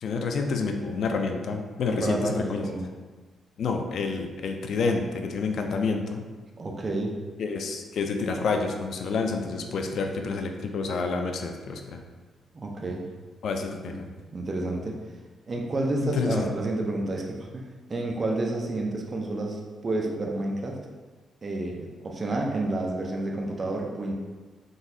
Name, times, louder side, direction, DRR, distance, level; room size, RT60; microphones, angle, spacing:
voice 1, 0.0-2.6 3.6-6.2 7.4-12.0 13.4-14.1 16.0-16.5, left 4 dB, 65° left, 4 dB, 0.4 m, -28 dB
voice 2, 2.0-2.8 6.6-7.1 12.5-13.0 13.8-13.9 14.3-14.9 15.5-17.6 17.9-20.8 21.4-24.1, right 2 dB, 30° right, 0 dB, 0.4 m, -30 dB
3.8 x 2.6 x 2.6 m, 1.3 s
cardioid pair, 140°, 0 cm